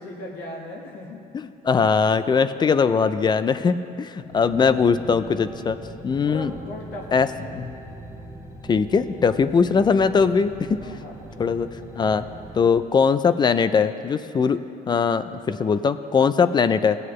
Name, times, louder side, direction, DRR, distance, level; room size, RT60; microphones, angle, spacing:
voice 1, 0.0-1.2 4.2-4.5 5.9-7.5 10.8-11.5, left 1 dB, 75° left, -2 dB, 1.5 m, -39 dB
voice 2, 1.3-5.8 6.0-6.5 7.1-7.8 8.7-10.8 11.4-11.7 12.0-12.3 12.6-14.6 14.9-17.0, left 5 dB, 25° left, 12 dB, 0.4 m, -21 dB
sound 1, 4.3-12.6, right 1 dB, 15° right, 1.0 m, -41 dB
17.5 x 7.8 x 3.1 m, 2.6 s
cardioid pair, 110°, 17 cm